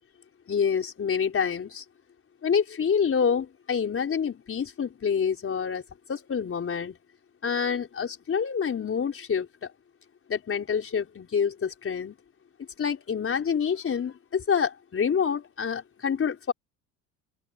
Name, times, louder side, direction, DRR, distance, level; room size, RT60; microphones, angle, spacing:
voice 1, 0.5-1.8 2.4-5.8 6.1-7.0 7.4-9.7 10.3-12.1 12.8-16.5, left 6 dB, 40° left, 4.8 m, -27 dB
open air
supercardioid pair, 90°, 35 cm